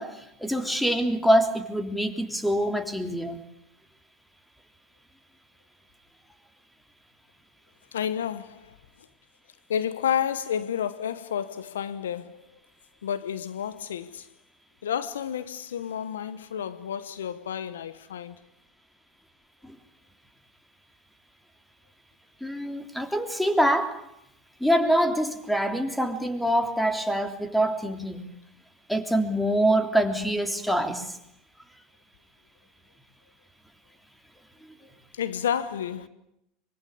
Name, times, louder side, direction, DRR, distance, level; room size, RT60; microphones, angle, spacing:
voice 1, 0.0-3.4 19.6-19.8 22.4-23.9 24.6-28.2 28.9-31.2, equal, 5° left, 3.3 m, -25 dB
voice 2, 7.9-8.8 9.7-12.4 13.0-14.3 14.8-18.3 35.1-36.1, left 9 dB, 85° left, 1.1 m, -30 dB
24.0 x 23.0 x 8.5 m
hypercardioid pair, 85°, 0 cm